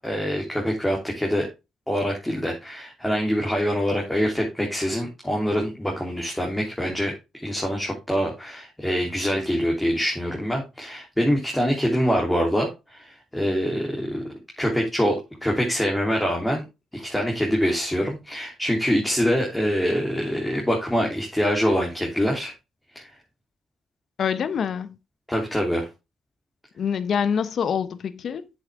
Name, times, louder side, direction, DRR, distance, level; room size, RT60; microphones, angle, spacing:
voice 1, 0.0-1.5 1.9-7.1 7.4-16.6 16.9-22.5 22.9-23.1 25.3-25.9, equal, 5° left, 3.2 m, -25 dB
voice 2, 24.2-25.0 26.8-28.5, left 7 dB, 60° left, 0.8 m, -25 dB
8.1 x 7.2 x 3.5 m
cardioid pair, 90°, 0 cm